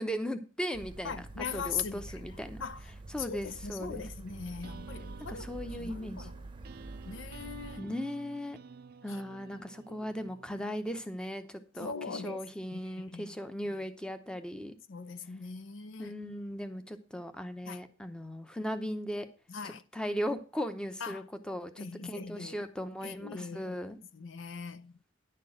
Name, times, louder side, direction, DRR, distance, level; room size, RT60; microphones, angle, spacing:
voice 1, 0.0-2.6 3.1-4.0 5.3-6.3 7.8-8.6 9.0-14.7 16.0-19.3 19.6-24.0, equal, 5° left, 0.8 m, -38 dB
sound 1, 0.7-7.8, right 2 dB, 25° right, 0.8 m, -46 dB
voice 2, 1.0-2.8 3.2-5.5 5.7-6.3 7.1-7.8 9.1-9.2 9.9-10.0 11.8-12.4 12.7-13.4 14.9-16.1 17.6-17.8 19.5-19.8 21.0-21.3 21.8-22.7 23.0-23.8 24.1-25.0, left 6 dB, 75° left, 0.7 m, -41 dB
sound 2, 4.3-11.0, right 5 dB, 50° right, 0.4 m, -51 dB
10.5 x 4.5 x 7.6 m
head